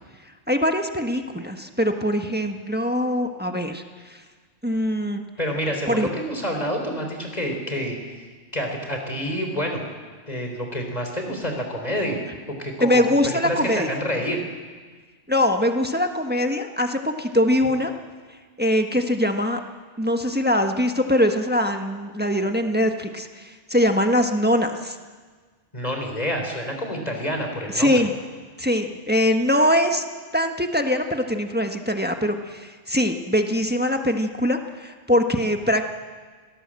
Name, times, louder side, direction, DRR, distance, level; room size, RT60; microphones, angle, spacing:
voice 1, 0.5-4.2 4.6-5.2 5.9-6.1 12.8-13.9 15.3-17.9 18.6-19.6 20.0-25.0 27.7-28.1 28.6-30.0 30.3-35.9, left 1 dB, 10° right, 5 dB, 1.3 m, -22 dB
voice 2, 5.4-8.2 8.5-9.9 10.3-12.2 12.5-14.4 25.7-27.9, equal, 30° left, 3 dB, 4.2 m, -28 dB
26.5 x 18.5 x 7.7 m, 1.5 s
omnidirectional pair, 1.3 m